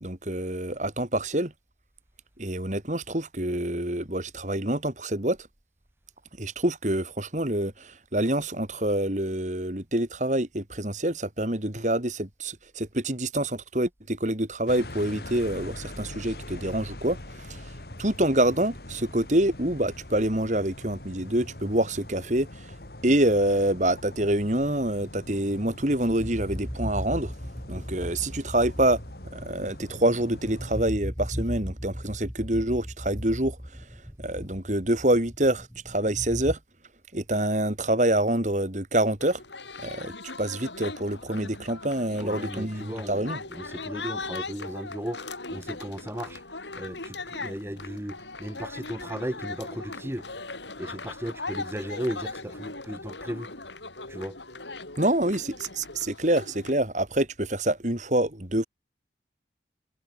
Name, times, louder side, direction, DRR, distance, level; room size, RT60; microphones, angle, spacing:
voice 1, 0.0-1.5 2.4-5.4 6.4-17.6 18.0-22.7 23.0-27.3 27.7-29.0 29.3-33.6 34.2-36.6 37.1-39.4 39.8-40.1 40.4-43.4 55.0-58.6, right 1 dB, 40° right, 3.1 m, -26 dB
sound 1, 14.7-30.8, left 1 dB, 60° left, 2.4 m, -43 dB
sound 2, 25.7-36.6, equal, ahead, 3.0 m, -37 dB
sound 3, 39.2-56.7, left 3 dB, 80° left, 7.8 m, -39 dB
voice 2, 42.2-45.3 45.5-46.4 46.7-50.3 50.8-53.5 54.1-54.4 55.2-55.4, equal, 15° right, 1.9 m, -36 dB
head